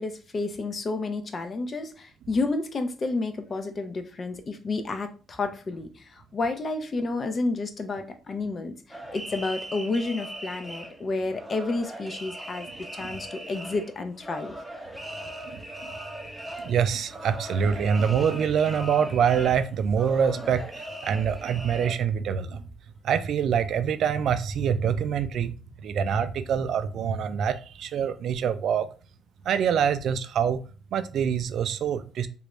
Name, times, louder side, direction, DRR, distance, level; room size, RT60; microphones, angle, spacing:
voice 1, 0.0-14.5, left 3 dB, 40° left, 0.6 m, -30 dB
sound 1, 8.9-21.9, right 1 dB, 5° right, 0.8 m, -39 dB
voice 2, 15.5-15.9 16.6-22.6 23.0-25.5 25.8-28.9 29.5-30.6 30.9-32.3, right 7 dB, 70° right, 0.3 m, -25 dB
3.2 x 2.5 x 3.0 m
cardioid pair, 90°, 0 cm